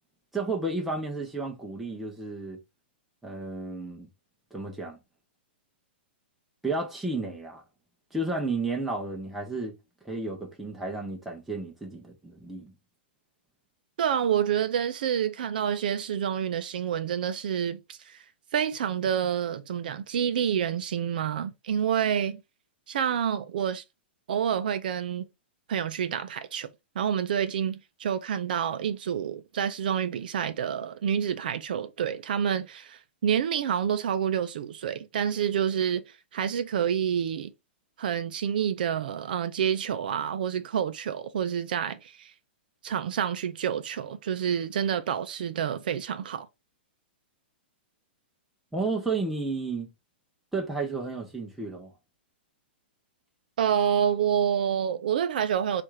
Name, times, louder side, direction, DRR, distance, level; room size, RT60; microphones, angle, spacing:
voice 1, 0.3-2.6 3.2-4.1 4.5-5.0 6.6-7.6 8.1-9.7 10.0-12.7 48.7-49.9 50.5-51.9, right 3 dB, ahead, 0.7 m, -32 dB
voice 2, 14.0-18.2 18.5-22.4 22.9-23.8 24.3-25.2 25.7-26.7 27.0-37.5 38.0-42.3 42.8-46.5 53.6-55.8, right 8 dB, 55° right, 0.5 m, -28 dB
4.2 x 2.5 x 4.6 m
hypercardioid pair, 175°, 6 cm